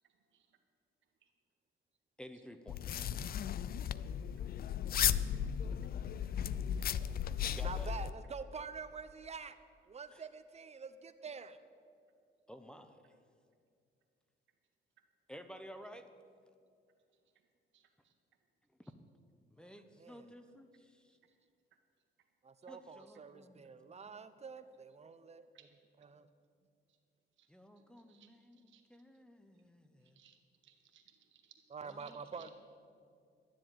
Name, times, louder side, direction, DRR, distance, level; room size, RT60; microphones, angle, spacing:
voice 1, 2.2-3.0 7.5-7.9 10.1-10.3 12.5-13.1 15.3-16.1 19.5-21.2 22.7-24.2 27.5-30.2 31.8-32.5, equal, 5° left, 8 dB, 0.9 m, -54 dB
sound 1, 2.7-8.1, left 9 dB, 50° left, 0.4 m, -35 dB
voice 2, 7.6-9.6 9.9-11.6 20.0-20.3 22.4-25.5 26.0-26.3 31.7-32.5, right 5 dB, 35° right, 11 dB, 0.8 m, -47 dB
voice 3, 17.7-18.1 25.5-25.6 27.4-27.5 27.8-28.3 28.7-28.8 30.2-30.4 30.6-31.6 32.0-32.5, right 10 dB, 70° right, 5 dB, 1.6 m, -64 dB
12.0 x 7.5 x 9.2 m, 2.3 s
cardioid pair, 90°, 20 cm